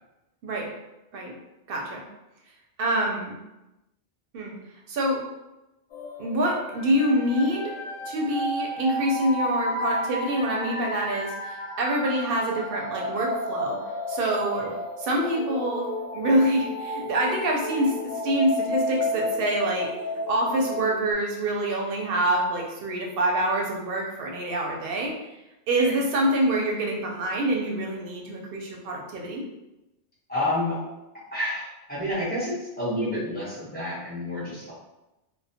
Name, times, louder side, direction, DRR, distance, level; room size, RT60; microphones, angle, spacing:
voice 1, 1.7-2.0 2.8-3.4 4.3-4.5 4.9-5.2 6.2-7.7 8.1-13.8 14.1-14.6 15.0-19.9 20.3-25.1 25.7-29.4, right 1 dB, 65° right, -1 dB, 0.7 m, -26 dB
sound 1, 5.9-21.1, left 1 dB, 85° left, 0.9 m, -32 dB
voice 2, 30.3-30.8 31.3-34.7, left 1 dB, 10° left, -10 dB, 0.8 m, -29 dB
2.2 x 2.0 x 2.7 m, 0.95 s
omnidirectional pair, 1.1 m